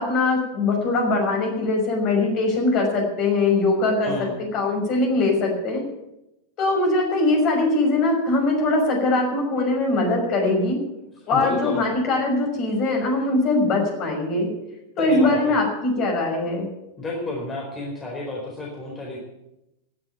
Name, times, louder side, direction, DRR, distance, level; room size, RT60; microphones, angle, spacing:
voice 1, 0.0-5.8 6.6-10.8 11.3-14.5 15.0-16.7, left 2 dB, 40° left, 1 dB, 5.9 m, -21 dB
voice 2, 4.0-4.3 11.3-11.8 15.0-15.6 17.0-19.2, left 2 dB, 20° left, -2 dB, 4.5 m, -31 dB
15.5 x 7.9 x 8.9 m, 0.91 s
hypercardioid pair, 95°, 0 cm